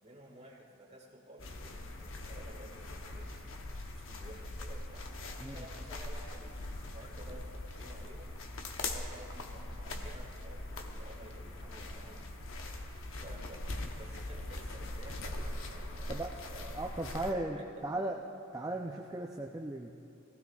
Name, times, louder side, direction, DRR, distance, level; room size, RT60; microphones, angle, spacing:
voice 1, 0.0-3.5 3.9-8.4 8.8-12.3 13.2-13.7 13.9-16.8 17.3-17.6 17.9-18.2, right 1 dB, 30° right, -2 dB, 1.7 m, -53 dB
sound 1, 1.4-17.3, left 2 dB, 65° left, 0.9 m, -42 dB
voice 2, 16.7-18.2 18.5-19.9, right 2 dB, 15° right, 0 dB, 0.4 m, -36 dB
18.5 x 15.5 x 2.4 m, 2.4 s
head